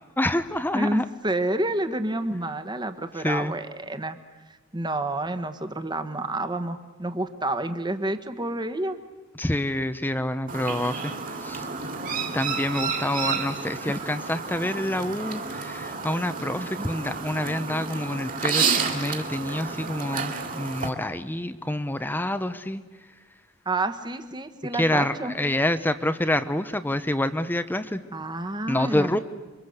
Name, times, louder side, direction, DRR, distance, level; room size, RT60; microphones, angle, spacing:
voice 1, 0.2-1.0 3.2-3.5 9.4-11.7 12.3-22.8 24.7-28.0 28.7-29.2, left 1 dB, 10° left, 11 dB, 0.8 m, -27 dB
voice 2, 0.7-4.2 4.5-9.0 13.8-13.9 16.6-16.9 23.6-25.3 28.1-29.2, right 2 dB, 20° right, 9 dB, 1.4 m, -29 dB
Chirp tweet, 10.5-20.9, right 5 dB, 40° right, 2.8 m, -30 dB
28.0 x 24.0 x 8.1 m, 1.2 s
head